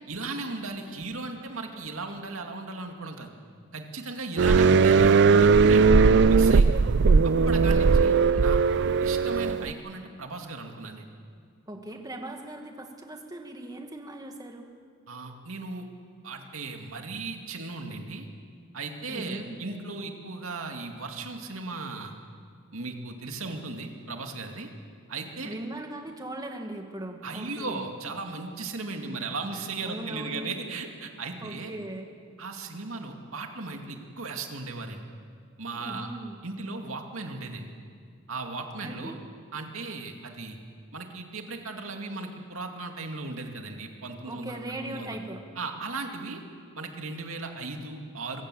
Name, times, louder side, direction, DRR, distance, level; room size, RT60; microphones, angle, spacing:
voice 1, 0.1-3.3 3.7-5.9 6.3-6.7 7.2-8.6 9.0-11.1 15.1-15.9 16.2-18.3 18.7-22.1 22.7-24.7 25.1-25.5 27.2-31.7 32.4-35.0 35.6-36.1 36.4-37.7 38.3-39.1 39.5-40.6 40.9-45.2 45.6-46.4 46.8-48.4, right 3 dB, 75° right, 3 dB, 2.4 m, -36 dB
sound 1, 4.4-9.7, right 4 dB, 55° right, 0.5 m, -19 dB
voice 2, 11.7-14.7 19.1-19.6 25.4-27.9 29.1-29.2 29.8-30.5 31.4-32.1 35.8-36.4 38.8-39.2 44.3-45.4, right 1 dB, 20° right, 3 dB, 2.0 m, -39 dB
25.5 x 16.0 x 7.7 m, 2.1 s
head